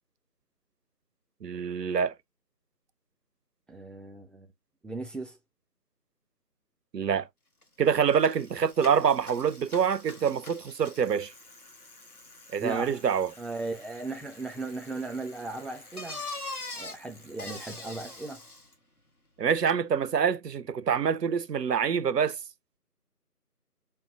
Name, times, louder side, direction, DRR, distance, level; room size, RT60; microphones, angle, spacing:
voice 1, 1.4-2.1 6.9-7.3 7.8-11.3 12.5-13.3 19.4-22.4, right 7 dB, 90° right, 0.6 m, -26 dB
voice 2, 3.7-4.5 4.8-5.4 12.6-13.0 13.4-16.3 16.7-18.4, right 3 dB, ahead, 0.5 m, -37 dB
Bicycle, 7.6-7.7 8.0-18.7, left 2 dB, 65° left, 1.3 m, -44 dB
5.4 x 2.2 x 2.4 m
figure-of-eight pair, 180°, 48 cm